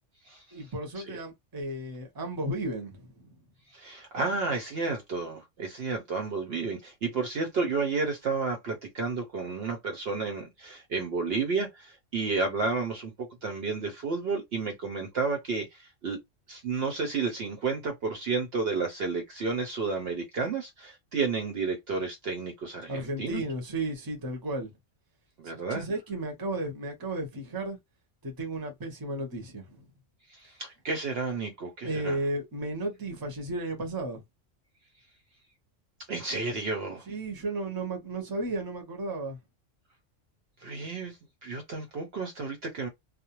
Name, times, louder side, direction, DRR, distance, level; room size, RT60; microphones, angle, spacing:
voice 1, 0.5-3.3 22.9-24.7 25.7-27.8 28.2-29.9 31.8-34.2 37.1-39.4, right 2 dB, 20° right, 0.7 m, -34 dB
voice 2, 3.7-16.2 16.5-23.4 25.4-25.8 30.3-32.2 36.1-37.1 40.6-42.9, right 4 dB, 60° right, 0.8 m, -31 dB
2.4 x 2.1 x 2.9 m
omnidirectional pair, 1.3 m